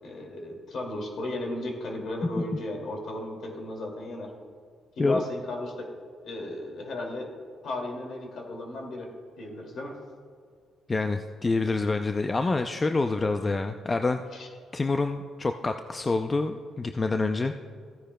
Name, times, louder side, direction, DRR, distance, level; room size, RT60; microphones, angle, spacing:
voice 1, 0.0-4.3 5.0-5.9 6.2-7.3 7.6-9.1 9.4-10.0 14.3-14.5, left 1 dB, 60° left, 1 dB, 2.2 m, -35 dB
voice 2, 10.9-14.2 14.7-17.5, left 3 dB, 25° left, 7 dB, 0.4 m, -27 dB
15.0 x 9.9 x 2.2 m, 2.1 s
cardioid pair, 90°, 0 cm